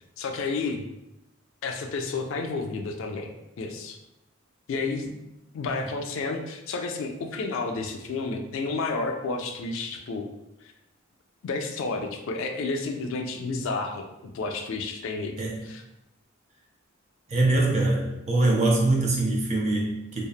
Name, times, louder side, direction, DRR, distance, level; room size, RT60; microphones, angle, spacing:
voice 1, 0.2-0.8 1.6-3.3 3.6-4.0 4.7-5.1 5.5-10.3 11.4-14.1 14.3-15.4 15.6-15.8, left 3 dB, 65° left, 4 dB, 0.3 m, -31 dB
voice 2, 17.3-20.3, right 2 dB, 35° right, -1 dB, 0.5 m, -23 dB
2.8 x 2.0 x 2.3 m, 0.88 s
head